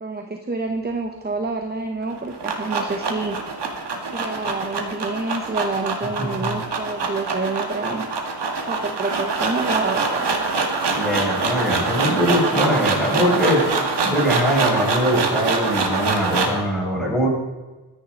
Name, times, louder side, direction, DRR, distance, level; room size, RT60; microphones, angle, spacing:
voice 1, 0.0-3.4 4.1-8.1 8.7-10.3, right 3 dB, 25° right, 5 dB, 1.0 m, -28 dB
sound 1, 2.0-16.6, right 4 dB, 85° right, 2.0 m, -24 dB
voice 2, 6.2-6.6 10.9-13.6 14.0-17.3, equal, ahead, -5 dB, 5.9 m, -22 dB
23.5 x 10.0 x 3.9 m, 1.2 s
wide cardioid pair, 145°, 40 cm